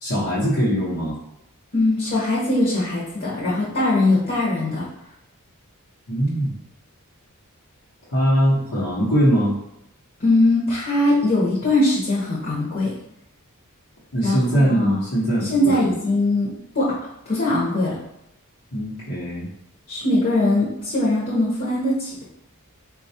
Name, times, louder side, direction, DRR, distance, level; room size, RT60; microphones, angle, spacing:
voice 1, 0.0-1.2 6.1-6.5 8.1-9.5 14.1-15.9 18.7-19.5, equal, 85° left, -10 dB, 0.9 m, -21 dB
voice 2, 1.7-4.9 10.2-12.9 14.2-15.0 15.4-17.0 17.3-18.0 19.9-22.2, left 2 dB, 45° left, -6 dB, 0.8 m, -21 dB
4.0 x 2.3 x 2.7 m, 0.80 s
head